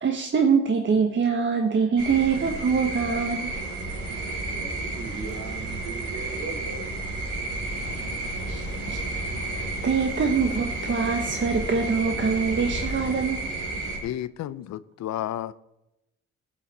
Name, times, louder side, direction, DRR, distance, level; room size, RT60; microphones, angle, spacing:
voice 1, 0.0-3.5 8.4-9.0 9.5-13.5, right 5 dB, 40° right, 1.2 m, -24 dB
sound 1, 2.0-14.0, right 2 dB, 85° right, 4.6 m, -32 dB
voice 2, 4.2-7.0 8.6-8.7 13.0-13.1, right 4 dB, 60° right, 3.5 m, -39 dB
sound 2, 7.6-13.2, left 6 dB, 85° left, 1.5 m, -42 dB
voice 3, 14.0-15.5, left 12 dB, 65° left, 0.6 m, -32 dB
17.0 x 7.4 x 4.2 m
cardioid pair, 90°, 30 cm